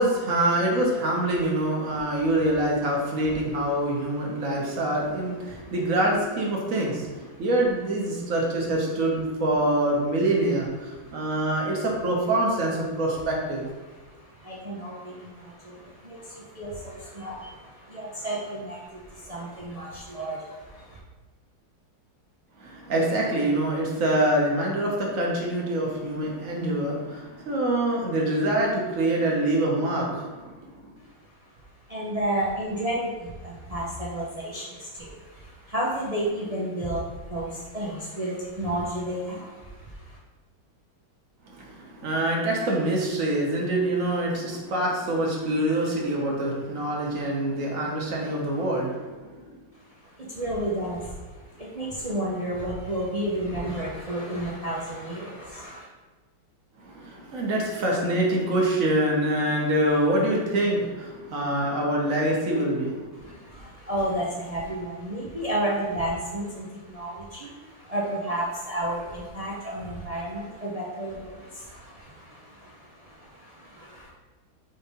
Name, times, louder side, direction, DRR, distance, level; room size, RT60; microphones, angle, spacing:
voice 1, 0.0-13.6 22.6-30.7 41.5-49.5 56.8-63.1, right 1 dB, 45° right, -2 dB, 1.5 m, -25 dB
voice 2, 10.9-11.5 13.8-21.0 31.0-31.5 31.8-40.2 49.7-55.8 63.1-74.1, right 1 dB, 75° right, -5 dB, 0.3 m, -32 dB
5.7 x 3.4 x 5.3 m, 1.3 s
omnidirectional pair, 2.2 m